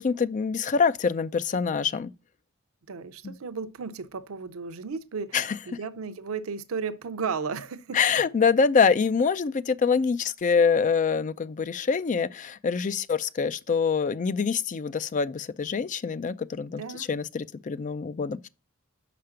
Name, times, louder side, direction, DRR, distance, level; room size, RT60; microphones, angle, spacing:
voice 1, 0.0-2.1 3.2-3.3 5.3-5.6 7.9-18.5, left 5 dB, 35° left, 0.4 m, -25 dB
voice 2, 2.9-5.4 5.7-8.0 16.7-17.1, right 5 dB, 90° right, 0.6 m, -34 dB
5.7 x 5.1 x 5.7 m
head